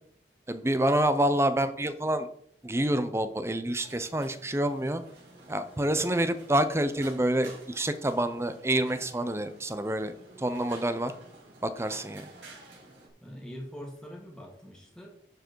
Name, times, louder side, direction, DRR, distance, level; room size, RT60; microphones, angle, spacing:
voice 1, 0.5-2.3 2.6-5.0 5.5-11.1 11.6-12.3, right 1 dB, 15° right, 11 dB, 0.6 m, -27 dB
sound 1, 3.8-13.1, right 2 dB, 90° right, 3.4 m, -51 dB
voice 2, 13.2-15.1, equal, 5° left, -1 dB, 2.1 m, -43 dB
11.5 x 4.8 x 4.6 m, 0.66 s
head